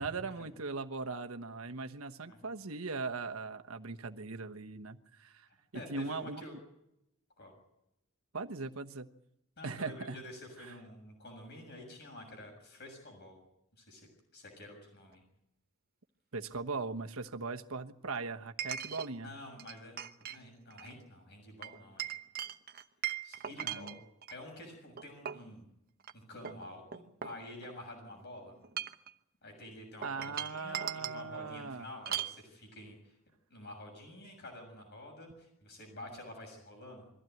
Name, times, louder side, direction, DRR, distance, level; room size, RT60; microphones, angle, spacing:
voice 1, 0.0-5.5 5.7-6.4 8.3-9.1 9.6-10.2 10.6-10.7 16.3-19.3 23.6-24.0 30.0-31.9, right 4 dB, 85° right, 6 dB, 1.2 m, -39 dB
voice 2, 5.5-6.6 7.4-7.5 9.6-13.4 13.8-15.2 19.2-22.1 23.2-24.0 24.3-25.7 26.1-28.6 29.4-33.2 33.5-37.1, left 1 dB, 55° left, 3 dB, 7.0 m, -49 dB
Chink clink, 15.1-15.2 18.6-19.1 19.6-20.4 20.7-20.9 21.6-24.4 25.0-25.5 26.0-26.1 26.5-27.9 28.6-29.1 30.0-31.2 32.1-32.4, right 9 dB, 45° right, 1.0 m, -39 dB
23.0 x 15.5 x 9.2 m, 0.83 s
head